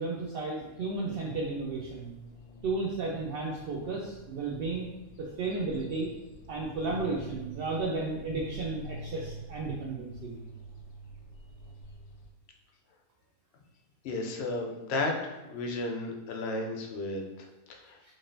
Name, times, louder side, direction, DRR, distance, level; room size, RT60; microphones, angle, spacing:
voice 1, 0.0-2.1 2.6-4.9 5.2-6.1 6.5-10.3 18.1-18.2, right 3 dB, 70° right, -4 dB, 0.5 m, -33 dB
sound 1, 0.8-12.3, right 1 dB, 90° left, 1.1 m, -47 dB
voice 2, 14.0-18.1, left 2 dB, 65° left, 2 dB, 0.7 m, -34 dB
3.9 x 3.1 x 2.6 m, 1.0 s
omnidirectional pair, 1.5 m